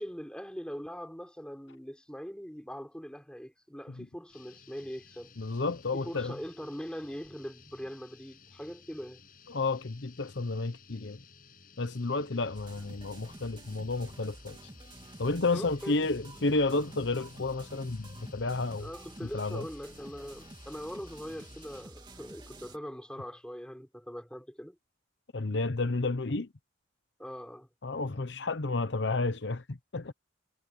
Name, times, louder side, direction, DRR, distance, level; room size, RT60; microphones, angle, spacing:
voice 1, 0.0-5.3 5.9-9.2 15.5-16.1 16.6-16.8 18.8-24.8 27.2-27.7, equal, 5° left, 4.1 m, -42 dB
sound 1, 4.3-21.8, left 5 dB, 45° left, 8.0 m, -57 dB
voice 2, 5.4-6.3 9.5-11.2 11.8-14.6 15.2-18.9 19.3-19.6 25.3-26.5 27.8-30.1, left 3 dB, 70° left, 0.9 m, -31 dB
sound 2, 12.5-22.8, right 1 dB, 25° right, 2.7 m, -50 dB
head